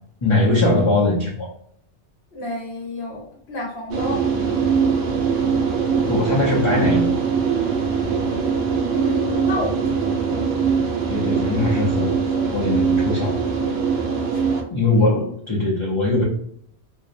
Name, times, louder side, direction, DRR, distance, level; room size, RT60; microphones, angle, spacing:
voice 1, 0.2-1.5 6.0-7.1 11.1-12.2 12.5-13.4 14.7-16.2, left 2 dB, 35° left, -4 dB, 0.5 m, -20 dB
voice 2, 2.3-4.2 8.9-10.2 14.3-14.6, left 1 dB, 80° left, -3 dB, 1.0 m, -30 dB
sound 1, 3.9-14.6, right 6 dB, 85° right, 0.9 m, -22 dB
2.6 x 2.0 x 2.5 m, 0.67 s
omnidirectional pair, 1.1 m